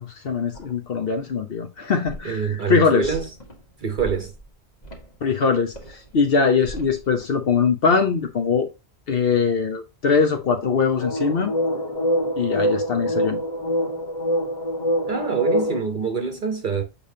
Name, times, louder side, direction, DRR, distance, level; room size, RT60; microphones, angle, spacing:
voice 1, 0.0-3.1 5.2-8.7 9.1-11.5 12.4-13.4, left 5 dB, 60° left, 1.0 m, -22 dB
sound 1, 0.5-0.7 2.1-2.2 3.0-3.5 4.0-4.4 4.8-5.0 5.7-5.9 6.6-7.0 10.6-15.8, equal, 40° left, 1.6 m, -25 dB
voice 2, 2.2-3.3 3.8-4.3 15.1-16.8, right 6 dB, 50° right, 0.9 m, -25 dB
7.0 x 5.1 x 2.7 m
omnidirectional pair, 1.1 m